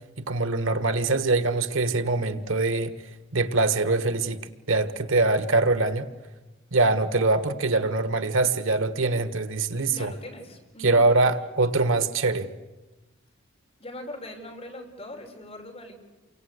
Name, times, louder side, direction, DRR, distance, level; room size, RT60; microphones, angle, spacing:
voice 1, 0.2-2.9 3.3-6.1 6.7-10.1 10.8-12.5, right 3 dB, 85° right, 1.5 m, -23 dB
voice 2, 9.9-11.0 13.8-15.9, left 1 dB, 30° left, 5.1 m, -41 dB
29.0 x 24.0 x 8.2 m
head